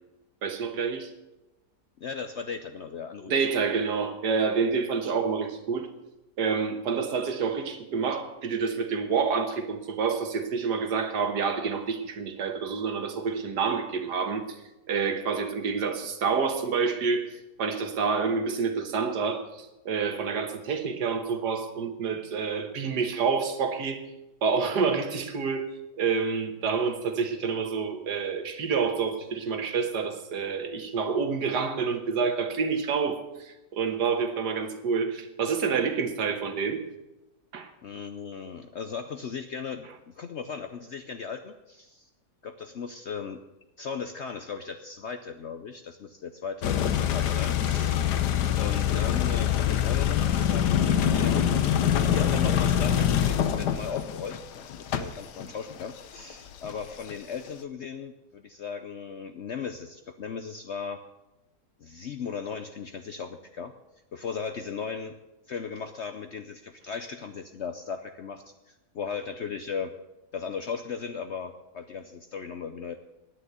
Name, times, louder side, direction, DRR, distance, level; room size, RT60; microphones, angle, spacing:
voice 1, 0.4-1.1 3.3-5.9 6.4-14.6 14.9-17.3 17.6-24.0 24.4-25.7 26.0-36.8 37.5-37.7, right 5 dB, 80° right, 7 dB, 1.9 m, -28 dB
voice 2, 2.0-3.3 37.8-42.1 42.4-43.4 43.8-48.1 48.6-51.5 52.1-61.0 61.8-63.7 64.1-65.2 65.5-69.9 70.3-73.0, left 6 dB, 55° left, 8 dB, 0.8 m, -37 dB
sound 1, 46.6-57.1, left 9 dB, 80° left, 1.5 m, -25 dB
9.9 x 9.3 x 9.6 m, 0.96 s
omnidirectional pair, 1.7 m